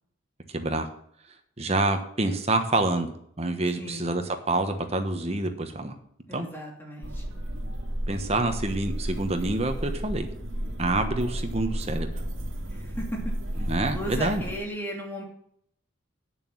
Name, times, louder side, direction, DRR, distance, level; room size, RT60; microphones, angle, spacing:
voice 1, 0.5-0.9 1.6-6.0 6.3-6.5 8.1-10.3 10.8-12.1 13.7-14.4, right 2 dB, 30° right, 6 dB, 1.2 m, -27 dB
voice 2, 6.3-7.4 12.7-15.2, equal, 10° left, -2 dB, 2.9 m, -36 dB
sound 1, 7.0-14.6, equal, 80° right, 2.1 m, -33 dB
9.1 x 6.9 x 7.3 m, 0.68 s
head